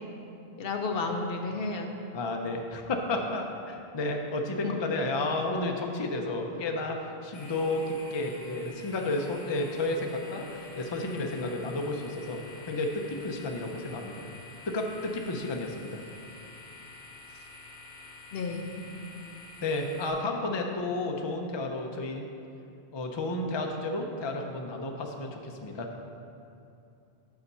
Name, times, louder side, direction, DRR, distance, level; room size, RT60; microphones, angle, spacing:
voice 1, 0.6-1.9 4.6-4.7 18.3-18.9, left 3 dB, 65° left, 3 dB, 0.8 m, -32 dB
voice 2, 2.1-14.2 14.7-16.0 19.6-22.3 22.9-25.9, left 2 dB, 35° left, 2 dB, 0.5 m, -32 dB
sound 1, 7.3-20.1, left 3 dB, 85° left, 1.3 m, -48 dB
6.8 x 5.7 x 5.5 m, 2.7 s
omnidirectional pair, 1.1 m